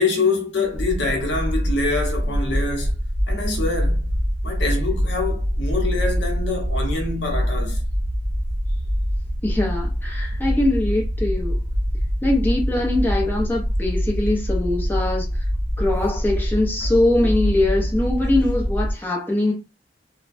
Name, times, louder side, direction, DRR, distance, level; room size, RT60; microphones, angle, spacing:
voice 1, 0.0-2.9 3.3-4.1 4.4-7.8, left 3 dB, 60° left, 0.8 m, -25 dB
sound 1, 0.6-18.9, equal, 65° right, 0.9 m, -24 dB
voice 2, 9.4-11.6 12.2-15.3 15.8-19.5, left 2 dB, 10° left, 0.6 m, -22 dB
3.2 x 2.2 x 2.5 m
head